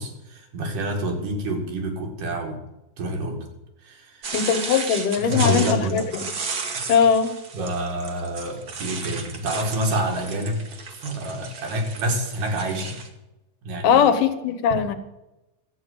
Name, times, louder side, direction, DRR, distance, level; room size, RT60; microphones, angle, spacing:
voice 1, 0.0-2.6 3.0-3.5 3.8-4.4 5.2-6.0 6.7-6.9 7.5-10.6 10.9-13.0 13.6-14.0, right 1 dB, 80° right, 1 dB, 3.8 m, -27 dB
sound 1, 4.2-13.1, right 5 dB, 50° right, 1.2 m, -34 dB
voice 2, 4.3-6.0 6.9-7.3 13.8-14.9, left 7 dB, 85° left, 9 dB, 2.6 m, -20 dB
12.5 x 8.3 x 8.0 m, 0.97 s
omnidirectional pair, 3.7 m